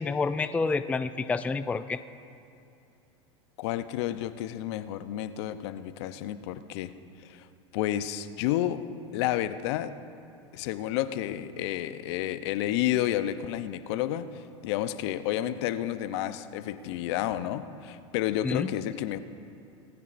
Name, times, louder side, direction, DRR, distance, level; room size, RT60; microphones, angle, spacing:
voice 1, 0.0-2.0 18.4-18.7, left 4 dB, 10° left, 12 dB, 0.3 m, -28 dB
voice 2, 3.6-6.9 7.2-7.5 7.7-8.8 9.1-9.9 10.5-19.2, left 12 dB, 65° left, 12 dB, 0.7 m, -30 dB
19.5 x 15.0 x 2.6 m, 2.7 s
hypercardioid pair, 95°, 15 cm